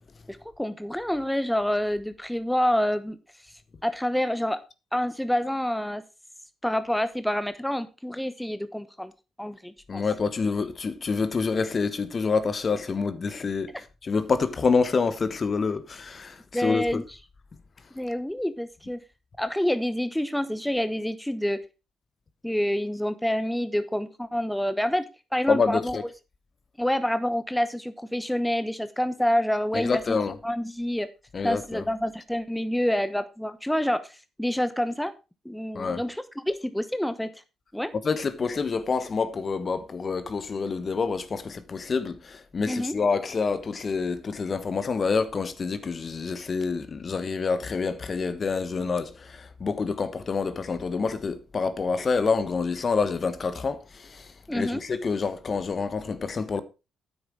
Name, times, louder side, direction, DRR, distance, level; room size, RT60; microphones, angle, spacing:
voice 1, 0.3-3.2 3.8-4.6 4.9-6.0 6.6-9.1 9.4-10.0 13.7-13.8 16.5-17.2 17.9-19.0 19.4-21.6 22.4-25.0 25.3-26.1 26.8-31.1 31.4-35.1 35.4-37.4 37.7-37.9 42.7-43.0 54.5-54.8, equal, 5° left, 0.9 m, -27 dB
voice 2, 9.9-13.7 14.0-16.3 16.6-17.0 25.5-26.0 29.7-30.3 31.3-31.8 35.7-36.0 38.0-53.8 54.5-56.6, left 4 dB, 45° left, 1.2 m, -27 dB
9.5 x 7.8 x 4.7 m
hypercardioid pair, 45°, 0 cm